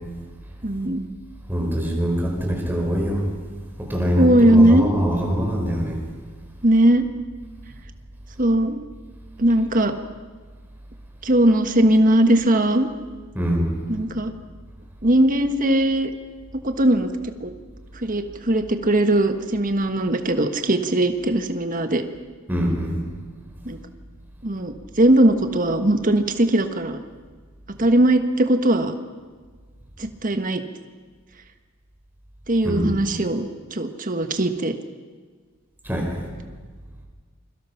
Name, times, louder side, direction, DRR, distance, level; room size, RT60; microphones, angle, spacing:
voice 1, 0.6-1.1 4.2-4.9 6.6-7.1 8.4-8.9 9.4-9.9 11.2-12.9 13.9-14.3 15.0-16.1 16.6-17.1 17.4-17.5 17.9-22.0 23.6-23.8 24.4-27.0 27.8-28.9 30.0-30.6 32.5-33.4 33.7-34.7, right 1 dB, 40° right, 8 dB, 1.4 m, -19 dB
voice 2, 1.5-3.2 3.9-6.0 13.3-13.7 22.5-23.0 32.6-32.9 35.8-36.2, equal, 10° right, 0 dB, 4.8 m, -23 dB
29.0 x 23.0 x 5.8 m, 1.5 s
head